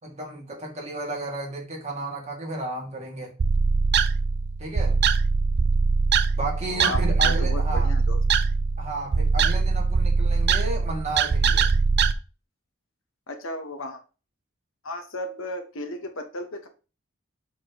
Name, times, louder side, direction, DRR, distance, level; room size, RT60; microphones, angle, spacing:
voice 1, 0.0-3.3 4.6-4.9 6.4-7.9 8.8-11.6, right 2 dB, 35° right, 2.4 m, -33 dB
sound 1, 3.4-12.1, right 4 dB, 55° right, 0.5 m, -22 dB
voice 2, 6.7-8.2 13.3-14.0 14.8-16.7, left 1 dB, 75° left, 1.4 m, -34 dB
7.2 x 5.9 x 3.0 m
head